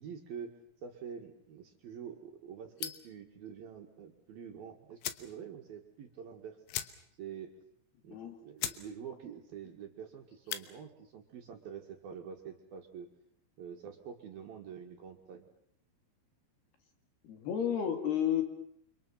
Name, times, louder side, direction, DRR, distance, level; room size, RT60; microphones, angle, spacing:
voice 1, 0.0-6.6 7.2-7.5 8.0-13.1 13.6-15.5, right 7 dB, 60° right, 3 dB, 3.1 m, -46 dB
sound 1, 2.8-3.2 4.5-4.6 5.0-5.3 5.7-5.8 6.0-6.2 6.7-7.3 7.6-7.7 8.2-8.3 8.6-8.9 9.2-9.6 10.3-10.7, left 13 dB, 80° left, 3.7 m, -39 dB
voice 2, 17.2-18.4, left 9 dB, 60° left, 7 dB, 3.7 m, -31 dB
29.5 x 26.0 x 5.8 m, 0.66 s
omnidirectional pair, 5.9 m